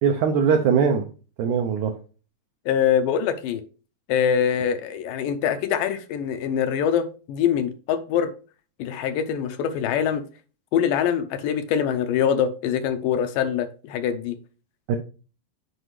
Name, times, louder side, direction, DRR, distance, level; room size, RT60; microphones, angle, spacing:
voice 1, 0.0-1.1 1.4-1.9 14.9-15.0, right 6 dB, 80° right, 1.7 m, -21 dB
voice 2, 2.7-3.6 4.1-8.3 8.8-10.2 10.7-14.4, left 8 dB, 80° left, 2.1 m, -24 dB
8.0 x 5.0 x 3.2 m
omnidirectional pair, 4.2 m